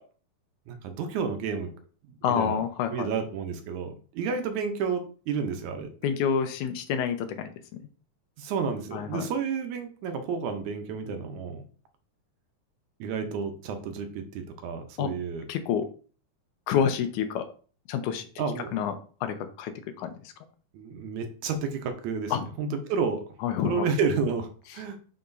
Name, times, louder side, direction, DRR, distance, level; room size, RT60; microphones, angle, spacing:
voice 1, 0.7-1.7 2.1-2.6 2.9-5.9 8.4-11.6 13.0-15.5 18.4-18.8 20.7-23.2 23.6-25.0, right 5 dB, 75° right, 6 dB, 2.0 m, -31 dB
voice 2, 2.2-3.1 6.0-7.5 8.9-9.3 15.0-15.1 15.5-15.9 16.7-17.5 17.9-18.3 18.7-19.0 19.2-20.1 22.3-22.5 23.4-23.9, left 8 dB, 75° left, 8 dB, 2.1 m, -28 dB
6.7 x 5.8 x 2.6 m, 0.40 s
omnidirectional pair, 3.8 m